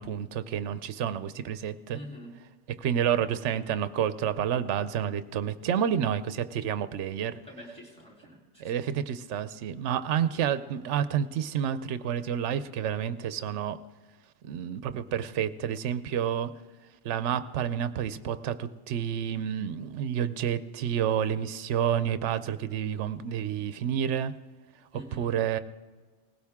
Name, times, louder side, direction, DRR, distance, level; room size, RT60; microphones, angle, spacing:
voice 1, 0.0-2.0 2.7-7.4 8.6-13.8 14.4-16.5 17.0-24.3 25.2-25.6, right 9 dB, 80° right, 12 dB, 0.9 m, -29 dB
voice 2, 1.9-2.3 7.4-8.9 24.9-25.3, equal, 5° left, -2 dB, 3.6 m, -46 dB
19.0 x 16.5 x 3.6 m, 1.4 s
omnidirectional pair, 1.2 m